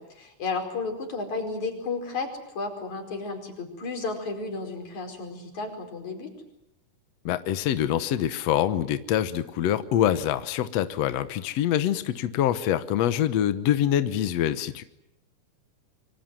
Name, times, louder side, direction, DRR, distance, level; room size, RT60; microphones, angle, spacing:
voice 1, 0.0-6.3, left 4 dB, 50° left, 5 dB, 6.0 m, -33 dB
voice 2, 7.2-14.8, left 11 dB, 75° left, 12 dB, 1.5 m, -25 dB
27.5 x 24.5 x 7.7 m, 0.84 s
omnidirectional pair, 4.5 m